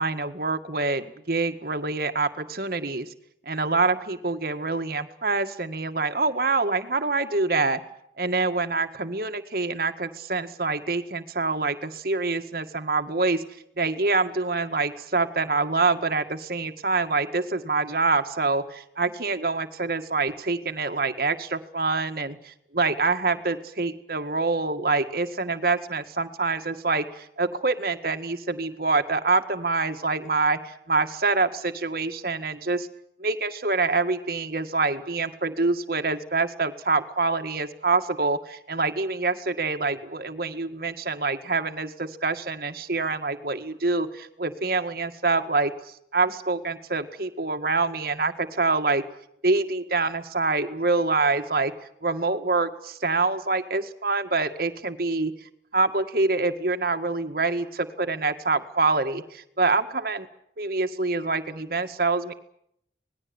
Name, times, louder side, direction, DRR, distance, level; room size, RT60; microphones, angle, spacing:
voice 1, 0.0-3.1 3.5-7.8 8.2-13.4 13.8-32.9 33.2-49.0 49.4-51.7 52.0-60.3 60.6-62.3, right 3 dB, 55° right, 7 dB, 1.9 m, -26 dB
26.5 x 20.0 x 8.9 m, 0.73 s
head